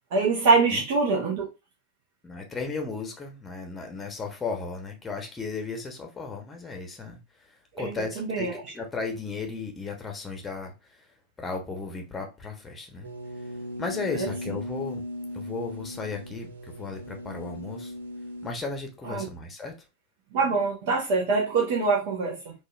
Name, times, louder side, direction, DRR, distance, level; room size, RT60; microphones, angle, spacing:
voice 1, 0.1-1.5 7.7-8.6 14.1-14.3 19.0-19.3 20.3-22.5, right 4 dB, 50° right, 0.9 m, -24 dB
voice 2, 2.2-7.2 7.8-10.7 11.4-13.1 13.8-15.0 15.3-17.9 18.4-19.7, left 4 dB, 15° left, 0.9 m, -35 dB
sound 1, 13.0-18.5, left 1 dB, 75° right, 0.6 m, -38 dB
3.9 x 2.5 x 2.4 m
figure-of-eight pair, 90°, 0 cm